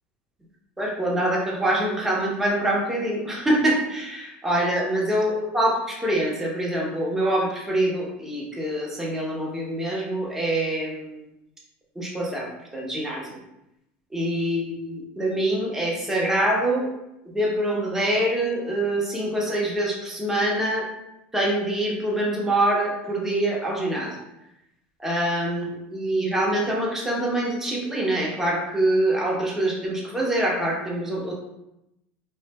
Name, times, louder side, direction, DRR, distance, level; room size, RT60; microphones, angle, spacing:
voice 1, 0.8-11.2 12.0-12.5 12.7-13.4 14.1-16.9 17.3-20.8 21.3-24.1 25.0-31.3, right 1 dB, 5° right, -4 dB, 0.9 m, -25 dB
3.9 x 2.5 x 2.3 m, 0.87 s
supercardioid pair, 110°, 5 cm